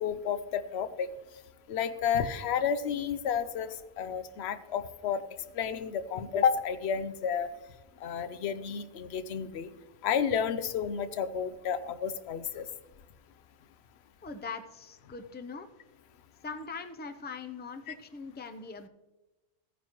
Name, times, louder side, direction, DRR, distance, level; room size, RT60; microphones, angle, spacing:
voice 1, 0.0-1.1 1.7-5.2 5.6-7.5 8.0-9.7 10.0-12.7 17.9-18.0, left 7 dB, 75° left, 13 dB, 0.9 m, -31 dB
voice 2, 14.2-15.7 16.4-18.9, left 4 dB, 15° left, 8 dB, 0.4 m, -41 dB
16.0 x 9.3 x 3.0 m, 1.1 s
omnidirectional pair, 1.1 m